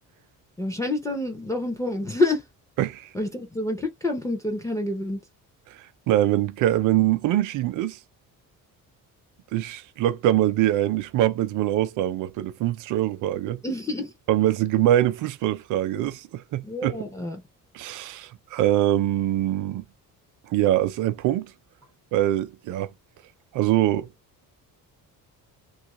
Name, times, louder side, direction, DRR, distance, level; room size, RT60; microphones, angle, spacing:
voice 1, 0.6-2.4 3.1-5.2 13.6-14.1 16.6-17.4, left 2 dB, 10° left, 0.3 m, -27 dB
voice 2, 2.8-3.1 6.1-8.0 9.5-13.6 14.3-17.1 17.7-19.8 20.5-21.5 22.1-22.9 23.5-24.1, right 13 dB, 60° right, 0.5 m, -23 dB
2.8 x 2.4 x 2.9 m
cardioid pair, 175°, 35 cm